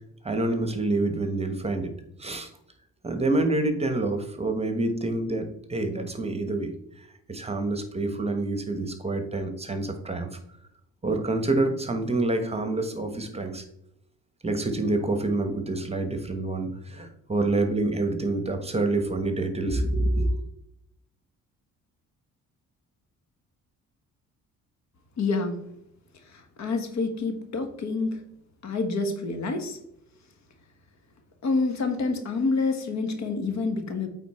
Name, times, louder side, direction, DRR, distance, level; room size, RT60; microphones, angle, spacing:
voice 1, 0.2-1.9 2.2-2.5 3.0-10.4 11.0-13.7 14.4-20.4, right 2 dB, 20° right, 7 dB, 1.2 m, -27 dB
voice 2, 25.2-25.6 26.3-28.2 28.6-29.8 31.4-34.1, left 3 dB, 65° left, 6 dB, 1.5 m, -27 dB
8.4 x 4.2 x 4.3 m, 0.76 s
cardioid pair, 90°, 30 cm